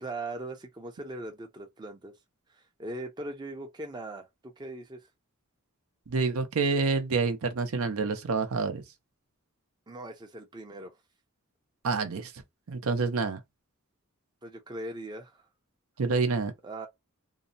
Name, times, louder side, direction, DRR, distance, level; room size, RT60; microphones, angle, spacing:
voice 1, 0.0-2.1 2.5-5.0 9.9-10.9 14.4-15.4 16.6-16.9, right 2 dB, 20° right, 0.5 m, -40 dB
voice 2, 6.1-8.8 11.8-12.4 12.7-13.4 16.0-16.5, right 4 dB, 75° right, 0.6 m, -28 dB
2.7 x 2.0 x 2.6 m
head